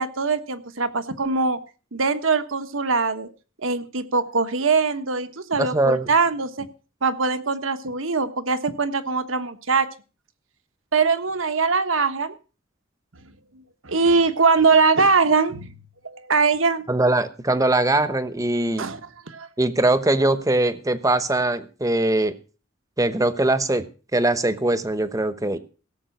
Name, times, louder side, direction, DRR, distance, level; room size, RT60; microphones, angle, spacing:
voice 1, 0.0-1.6 1.9-3.3 3.6-6.7 7.0-9.9 10.9-12.3 13.8-15.7 16.0-16.8 18.8-19.0 19.3-19.5, right 4 dB, 75° right, 10 dB, 1.3 m, -22 dB
voice 2, 5.6-6.1 16.9-18.9 19.6-22.4 23.0-23.9 24.1-25.6, right 2 dB, 15° right, 12 dB, 1.0 m, -21 dB
17.0 x 7.5 x 6.0 m, 0.35 s
head